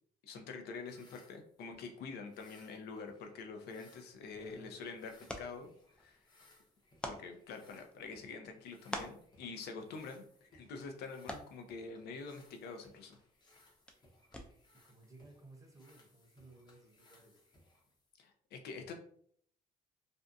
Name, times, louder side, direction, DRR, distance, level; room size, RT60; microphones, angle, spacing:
voice 1, 0.2-5.1 5.4-5.7 5.9-6.2 7.0-13.2 18.2-18.9, left 4 dB, 70° left, 5 dB, 0.5 m, -46 dB
sound 1, 0.7-18.3, left 2 dB, 25° left, 0.7 m, -67 dB
sound 2, 4.1-14.8, left 1 dB, 5° left, 0.3 m, -50 dB
voice 2, 4.3-4.8 14.8-17.5, right 2 dB, 20° right, 0 dB, 0.7 m, -58 dB
2.6 x 2.2 x 2.5 m, 0.63 s
cardioid pair, 110°, 17 cm